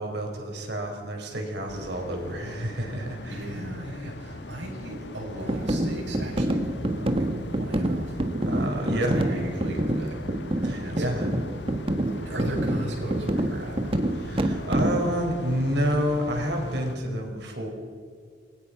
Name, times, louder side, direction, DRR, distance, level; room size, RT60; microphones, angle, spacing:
voice 1, 0.0-3.5 8.4-9.2 10.6-11.3 14.1-17.7, equal, 70° right, 2 dB, 5.1 m, -29 dB
sound 1, 1.7-17.0, left 2 dB, 70° left, 1.6 m, -41 dB
voice 2, 3.3-8.2 8.9-10.2 10.8-11.2 12.2-13.9, right 1 dB, 85° right, -1 dB, 7.6 m, -36 dB
sound 2, 5.5-15.1, right 1 dB, 30° right, 1.4 m, -27 dB
28.0 x 21.0 x 5.9 m, 2.1 s
head